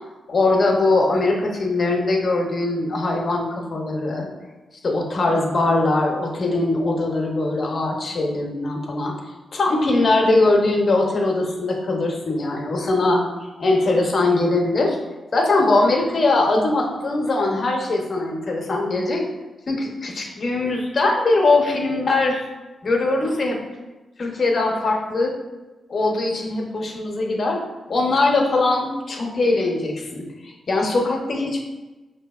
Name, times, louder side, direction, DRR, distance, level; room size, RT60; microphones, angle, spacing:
voice 1, 0.3-4.3 4.8-9.1 9.5-13.2 13.6-15.0 15.3-19.3 19.7-22.5 22.8-23.6 24.2-25.3 25.9-27.6 27.9-31.6, left 2 dB, 50° left, 1 dB, 0.7 m, -21 dB
5.4 x 2.7 x 2.3 m, 1.2 s
cardioid pair, 90°, 0 cm